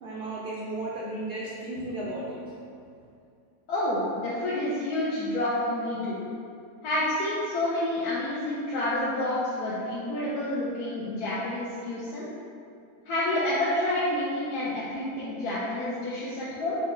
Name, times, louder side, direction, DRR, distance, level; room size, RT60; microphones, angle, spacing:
voice 1, 0.0-2.5, right 2 dB, 65° right, -5 dB, 0.6 m, -34 dB
voice 2, 3.7-6.2 6.8-12.3 13.1-16.8, left 1 dB, 80° left, -8 dB, 1.2 m, -29 dB
4.6 x 2.2 x 4.7 m, 2.5 s
omnidirectional pair, 1.6 m